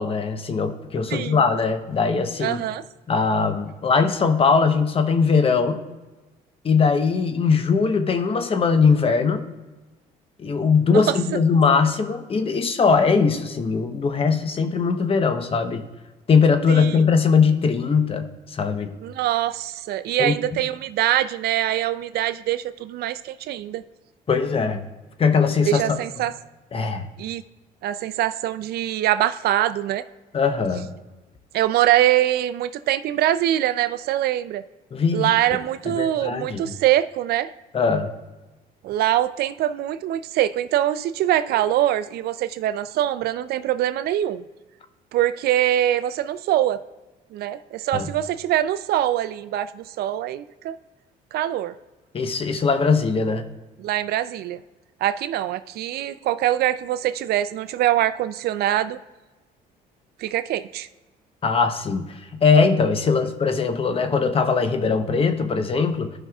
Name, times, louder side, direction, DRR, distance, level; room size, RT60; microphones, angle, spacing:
voice 1, 0.0-2.6 3.1-5.8 6.6-9.5 10.4-15.9 16.3-18.9 20.2-20.3 24.3-24.8 25.2-26.0 26.7-27.1 30.3-30.9 34.9-35.3 35.9-36.8 37.7-38.1 47.9-48.1 52.1-53.4 61.4-66.1, left 5 dB, 35° left, 8 dB, 0.9 m, -20 dB
voice 2, 1.1-1.4 2.4-2.8 10.9-11.2 16.7-17.0 19.0-23.8 25.7-26.3 27.2-27.4 27.8-30.0 31.5-34.6 35.1-37.5 38.8-44.5 45.1-46.8 47.3-50.8 51.3-51.7 53.8-54.6 55.0-59.0 60.2-60.9, right 13 dB, 70° right, 13 dB, 0.4 m, -23 dB
15.0 x 5.5 x 2.4 m, 1.2 s
cardioid pair, 110°, 17 cm